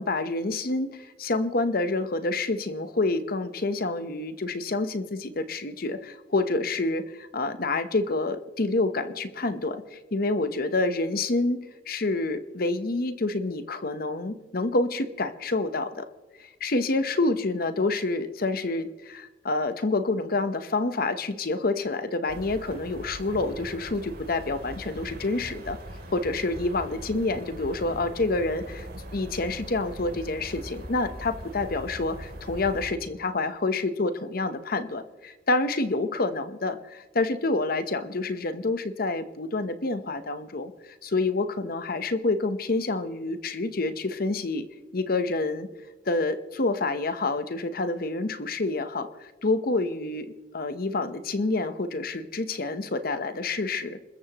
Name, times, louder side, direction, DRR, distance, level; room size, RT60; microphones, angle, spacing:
voice 1, 0.0-7.0 7.3-11.6 11.9-16.1 16.4-25.8 26.1-28.9 29.1-40.7 41.0-44.7 44.9-45.7 46.1-54.0, left 2 dB, 55° left, 11 dB, 0.9 m, -28 dB
sound 1, 22.3-32.9, right 1 dB, 60° right, 3.0 m, -41 dB
27.5 x 14.5 x 3.0 m, 1.2 s
head